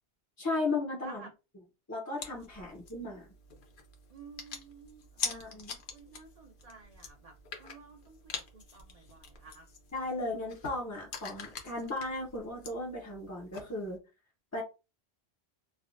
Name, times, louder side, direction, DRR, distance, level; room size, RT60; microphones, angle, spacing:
voice 1, 0.4-1.2 1.9-3.3 5.2-5.8 9.9-14.0 14.5-14.6, left 2 dB, 25° left, 0.4 m, -36 dB
voice 2, 1.0-1.3 2.6-2.7 4.1-5.3 5.9-9.7, right 5 dB, 50° right, 0.5 m, -53 dB
sound 1, 2.2-14.0, left 5 dB, 60° left, 0.7 m, -45 dB
3.3 x 2.1 x 2.4 m
omnidirectional pair, 1.1 m